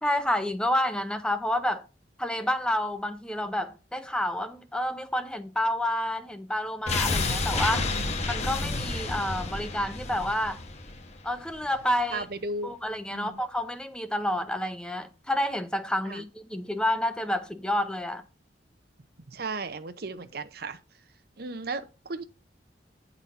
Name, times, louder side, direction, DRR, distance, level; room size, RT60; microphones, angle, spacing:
voice 1, 0.0-1.8 2.2-7.9 8.3-10.6 11.2-12.2 12.6-18.2, left 1 dB, 5° left, 0.6 m, -29 dB
sound 1, 6.9-11.8 12.1-12.2, left 3 dB, 40° left, 1.1 m, -30 dB
voice 2, 7.7-8.2 12.1-12.7 13.1-13.4 16.1-16.2 19.3-20.8 21.4-22.2, right 3 dB, 60° right, 0.8 m, -35 dB
9.5 x 4.1 x 5.7 m
head